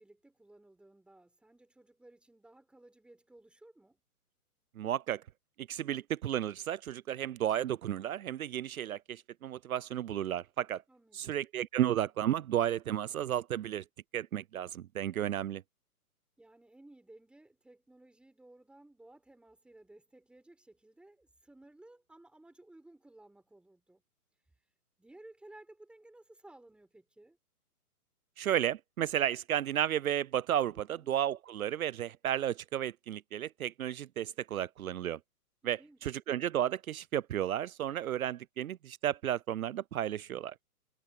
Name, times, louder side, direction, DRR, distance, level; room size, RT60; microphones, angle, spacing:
voice 1, 0.0-4.0 10.9-11.4 16.4-24.0 25.0-27.4 30.7-31.1 35.6-36.1, right 2 dB, ahead, 6.5 m, -57 dB
voice 2, 4.8-5.2 5.7-10.8 11.1-13.8 14.1-15.6 28.4-35.2 35.7-40.5, right 11 dB, 65° right, 0.7 m, -33 dB
hypercardioid pair, 155°, 46 cm